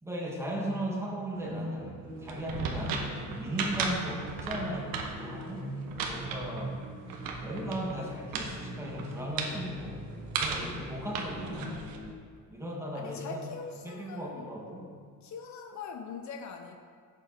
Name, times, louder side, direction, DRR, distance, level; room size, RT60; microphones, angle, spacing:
voice 1, 0.0-5.6 6.1-6.8 7.4-10.0 10.4-11.9 12.5-13.5 13.8-14.9, equal, 10° right, -2 dB, 1.5 m, -37 dB
sound 1, 1.3-12.1, right 1 dB, 55° right, 1.8 m, -42 dB
sound 2, 2.2-8.0 8.3-8.5 8.8-9.6 10.3-10.7 11.1-12.0, right 5 dB, 80° right, 1.4 m, -35 dB
voice 2, 12.9-14.5 15.2-16.8, left 5 dB, 55° left, 5 dB, 0.8 m, -42 dB
11.5 x 8.2 x 4.4 m, 2.1 s
cardioid pair, 165°, 34 cm